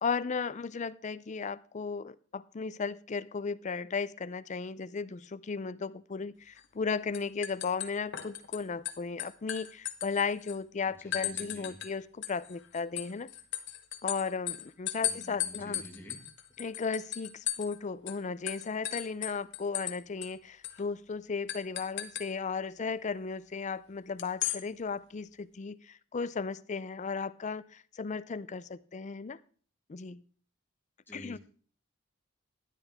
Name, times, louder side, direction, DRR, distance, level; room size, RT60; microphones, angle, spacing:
voice 1, 0.0-13.3 14.0-15.8 16.6-29.4 29.9-30.2 31.1-31.4, left 5 dB, 35° left, 0.5 m, -35 dB
Thick Ceramic Mug being Stirred with Metal Teaspoon, 6.6-6.9 7.1-8.6 8.9-10.6 11.1-11.9 12.2-17.8 18.1-18.2 18.5-20.0 20.2-20.3 20.6-20.8 21.5-22.3 24.2-24.6, left 12 dB, 65° left, 1.2 m, -36 dB
voice 2, 10.9-11.8 15.0-16.2 31.1-31.4, equal, 10° left, 1.8 m, -49 dB
13.0 x 10.0 x 3.6 m
head